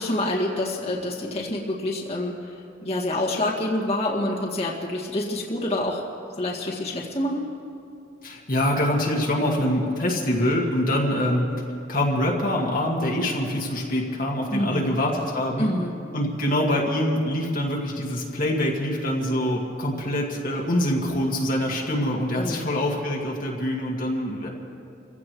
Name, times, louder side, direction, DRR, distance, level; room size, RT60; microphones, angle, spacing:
voice 1, 0.0-6.0 6.4-7.5 14.5-15.0 15.6-15.9 22.4-22.7, left 1 dB, 35° left, -4 dB, 2.0 m, -27 dB
voice 2, 8.2-11.5 11.9-15.7 16.1-24.5, left 1 dB, 50° left, -2 dB, 2.0 m, -25 dB
28.0 x 16.0 x 3.2 m, 2.5 s
head